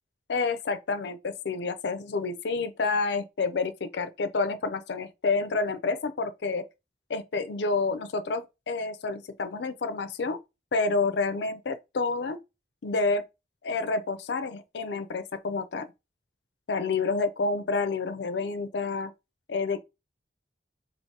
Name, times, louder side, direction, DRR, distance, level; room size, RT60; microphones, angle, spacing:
voice 1, 0.3-6.6 7.1-10.4 10.7-12.4 12.8-13.2 13.6-15.9 16.7-19.1 19.5-19.8, left 4 dB, 70° left, 0.5 m, -29 dB
4.5 x 2.5 x 2.8 m
head